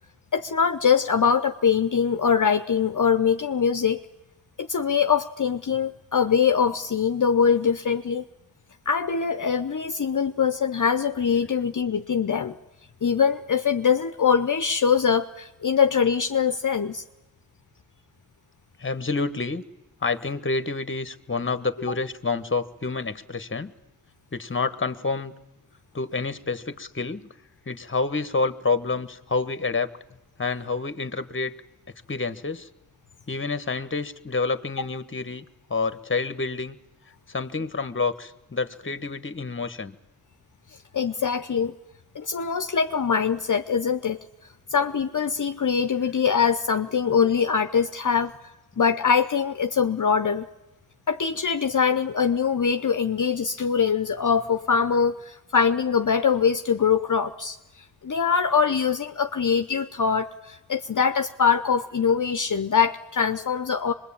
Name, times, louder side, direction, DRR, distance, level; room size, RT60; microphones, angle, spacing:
voice 1, 0.3-4.0 4.6-8.2 8.9-12.5 13.0-17.0 40.9-41.7 42.1-44.2 44.7-48.3 48.8-50.5 51.1-57.6 58.0-63.9, left 6 dB, 50° left, 8 dB, 0.8 m, -23 dB
voice 2, 18.8-19.6 20.0-23.7 24.3-25.3 25.9-27.3 27.7-29.9 30.4-31.5 32.1-32.7 33.3-35.4 35.7-36.8 37.3-39.9, left 4 dB, 30° left, 13 dB, 1.3 m, -28 dB
24.0 x 21.0 x 8.7 m, 0.99 s
cardioid pair, 50°, 40 cm